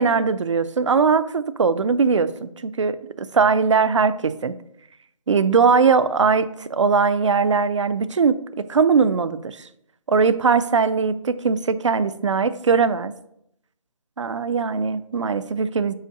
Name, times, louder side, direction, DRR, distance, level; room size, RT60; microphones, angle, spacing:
voice 1, 0.0-4.5 5.3-9.7 10.1-13.1 14.2-15.9, right 5 dB, 55° right, 14 dB, 0.5 m, -20 dB
5.6 x 4.5 x 6.2 m, 0.75 s
hypercardioid pair, 170°, 18 cm